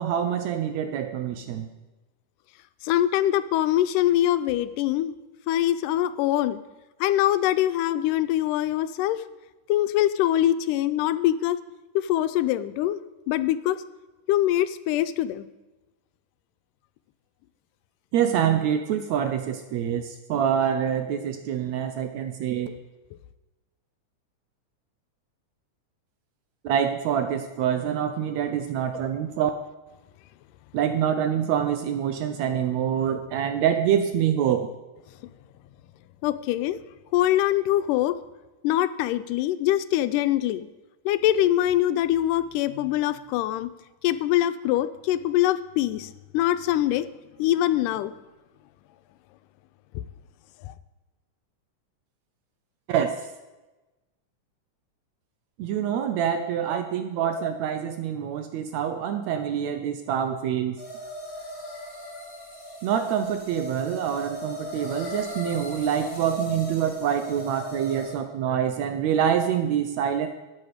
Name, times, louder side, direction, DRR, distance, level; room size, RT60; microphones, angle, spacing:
voice 1, 0.0-1.7 18.1-22.7 26.6-29.5 30.7-34.7 52.9-53.1 55.6-60.8 62.8-70.3, right 9 dB, 80° right, 8 dB, 1.7 m, -26 dB
voice 2, 2.8-5.1 5.5-6.6 7.0-9.2 9.7-11.6 12.0-13.0 13.3-13.8 14.3-15.5 36.2-36.8 37.1-38.2 38.6-40.7 41.1-43.7 44.0-47.1 47.4-48.1 49.9-50.0 50.6-50.7, left 13 dB, 90° left, 13 dB, 2.1 m, -23 dB
sound 1, 60.8-68.1, right 1 dB, 20° left, 2.2 m, -37 dB
12.5 x 8.6 x 5.0 m, 1.1 s
omnidirectional pair, 3.7 m